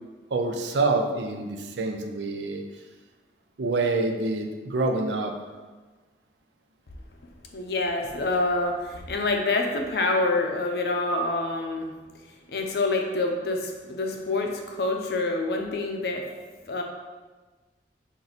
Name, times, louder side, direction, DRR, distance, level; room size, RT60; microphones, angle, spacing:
voice 1, 0.3-2.6 3.6-5.4, right 3 dB, 85° right, 4 dB, 0.5 m, -26 dB
voice 2, 7.5-11.9 12.5-16.2 16.7-16.8, left 2 dB, 65° left, 2 dB, 0.6 m, -26 dB
4.5 x 2.7 x 4.0 m, 1.3 s
head